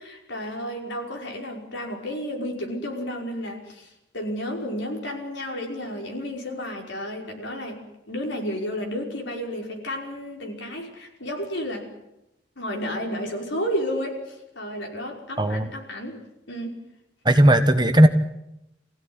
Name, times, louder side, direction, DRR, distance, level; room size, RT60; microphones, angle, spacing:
voice 1, 0.0-11.9 12.6-16.8, equal, 65° left, 1 dB, 5.5 m, -32 dB
voice 2, 15.4-15.7 17.2-18.1, right 1 dB, 20° right, 8 dB, 1.2 m, -16 dB
26.0 x 16.0 x 9.8 m, 0.87 s
head